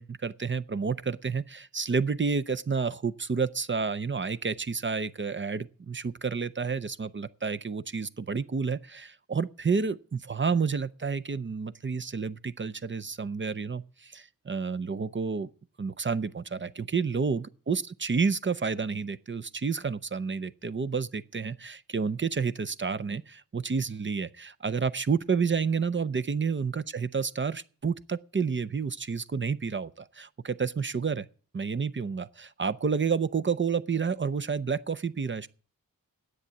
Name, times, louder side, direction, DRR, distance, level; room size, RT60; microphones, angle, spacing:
voice 1, 0.0-15.5 15.8-31.3 31.5-35.5, right 5 dB, 35° right, 0.6 m, -30 dB
10.5 x 8.1 x 8.3 m
wide cardioid pair, 100°, 35 cm